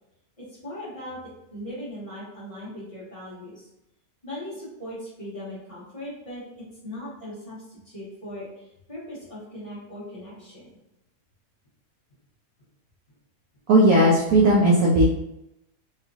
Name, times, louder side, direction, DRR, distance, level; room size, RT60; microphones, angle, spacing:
voice 1, 0.4-1.2 1.5-3.7 4.2-6.5 6.8-10.7, left 1 dB, 20° left, -11 dB, 1.3 m, -39 dB
voice 2, 13.7-15.0, right 1 dB, 70° right, -3 dB, 0.8 m, -17 dB
3.3 x 3.1 x 2.4 m, 0.88 s
omnidirectional pair, 1.8 m